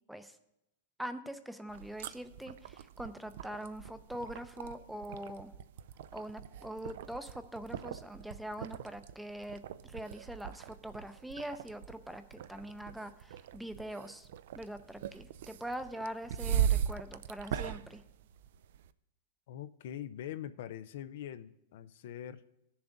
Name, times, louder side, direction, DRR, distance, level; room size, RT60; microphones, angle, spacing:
voice 1, 1.0-5.5 6.1-14.3 14.6-18.0, right 1 dB, 5° right, 10 dB, 0.5 m, -43 dB
sound 1, 1.7-18.9, right 9 dB, 70° right, 0.4 m, -39 dB
voice 2, 19.5-22.4, left 11 dB, 65° left, 12 dB, 0.4 m, -43 dB
17.5 x 7.0 x 2.6 m, 0.86 s
hypercardioid pair, 130°, 0 cm